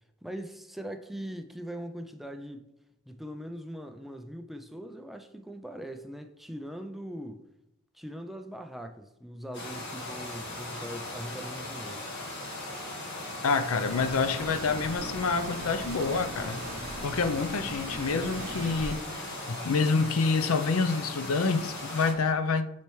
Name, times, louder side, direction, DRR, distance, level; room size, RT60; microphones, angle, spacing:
voice 1, 0.2-2.7 3.1-7.4 7.9-12.1, equal, ahead, 0.3 m, -41 dB
sound 1, 9.5-22.1, left 2 dB, 55° left, 1.8 m, -38 dB
voice 2, 13.4-16.6 17.0-22.8, left 4 dB, 85° left, 0.5 m, -27 dB
sound 2, 13.8-19.0, right 2 dB, 70° right, 0.8 m, -40 dB
8.4 x 4.3 x 3.1 m
head